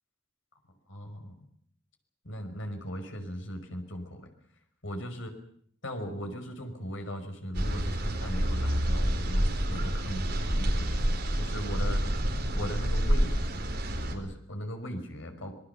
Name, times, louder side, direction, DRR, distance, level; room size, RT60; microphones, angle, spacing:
voice 1, 0.9-1.3 2.2-4.3 4.8-5.3 5.8-12.0 12.5-13.4 14.1-15.5, equal, 80° left, 5 dB, 5.6 m, -38 dB
sound 1, 7.5-14.1, equal, 55° right, 4.4 m, -28 dB
26.0 x 21.0 x 7.0 m, 0.63 s
head